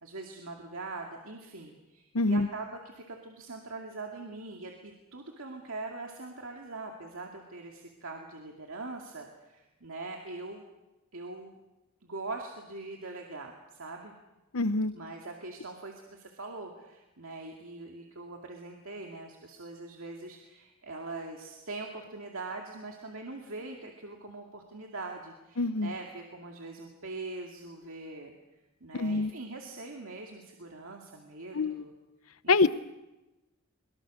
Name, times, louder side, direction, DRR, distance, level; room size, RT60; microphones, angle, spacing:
voice 1, 0.0-10.6 11.1-11.6 12.0-14.1 14.9-28.3 28.8-31.9 32.4-32.7, right 3 dB, 75° right, 1 dB, 2.3 m, -42 dB
voice 2, 2.1-2.5 14.5-14.9 25.6-25.9 28.9-29.3 31.5-31.8 32.5-32.7, left 3 dB, 90° left, 15 dB, 0.8 m, -25 dB
23.5 x 22.5 x 6.5 m, 1.0 s
head